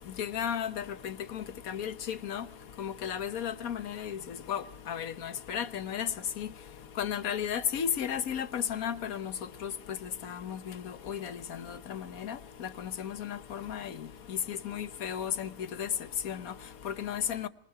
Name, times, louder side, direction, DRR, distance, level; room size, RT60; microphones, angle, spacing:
voice 1, 0.2-2.4 2.8-6.1 6.4-6.5 7.0-9.3 9.6-9.7 10.2-14.0 14.3-15.5 15.8-15.9 16.2-16.5 16.8-17.5, left 8 dB, 65° left, 1.4 m, -34 dB
26.0 x 21.5 x 4.8 m
omnidirectional pair, 1.7 m